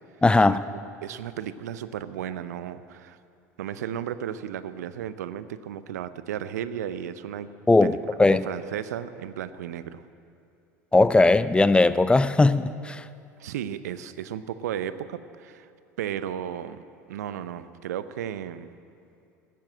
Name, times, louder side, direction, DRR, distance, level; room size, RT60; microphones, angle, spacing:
voice 1, 0.2-0.6 7.7-8.4 10.9-13.0, left 2 dB, 10° left, 0.5 m, -19 dB
voice 2, 1.0-3.2 3.6-7.5 7.8-8.0 8.2-10.1 13.4-15.7 16.0-18.7, right 10 dB, 75° right, 0.7 m, -34 dB
15.0 x 12.5 x 7.6 m
hypercardioid pair, 75°, 9 cm